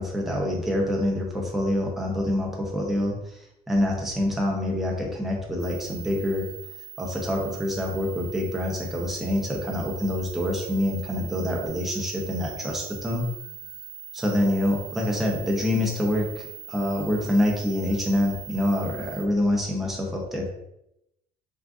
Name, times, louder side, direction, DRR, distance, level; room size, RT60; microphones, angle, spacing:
voice 1, 0.0-3.4 3.7-6.5 7.0-13.2 14.1-20.5, left 1 dB, ahead, -1 dB, 0.6 m, -26 dB
sound 1, 5.6-19.2, right 9 dB, 75° right, 0.7 m, -42 dB
3.5 x 2.4 x 2.4 m, 0.83 s
cardioid pair, 110°, 17 cm